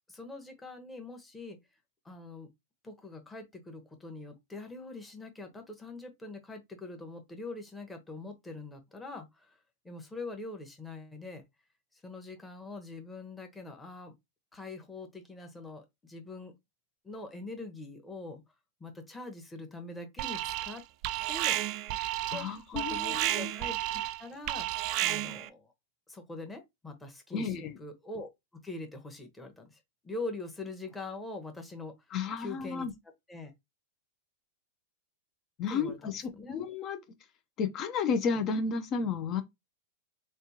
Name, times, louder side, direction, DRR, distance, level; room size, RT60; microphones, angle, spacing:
voice 1, 0.1-1.6 2.0-2.5 2.8-9.6 9.8-11.4 11.9-14.1 14.5-16.5 17.0-18.4 18.8-20.8 21.3-21.6 22.3-25.7 26.1-31.9 32.4-32.9 33.3-33.5 35.7-36.6, left 2 dB, 10° left, 1.0 m, -43 dB
Alarm, 20.2-20.8 21.0-25.5, right 15 dB, 50° right, 0.3 m, -32 dB
voice 2, 22.3-23.5 27.3-27.7 32.1-32.9 35.6-36.2 36.5-37.0 37.6-39.4, left 5 dB, 35° left, 0.7 m, -32 dB
3.4 x 2.5 x 2.8 m
hypercardioid pair, 120°, 0 cm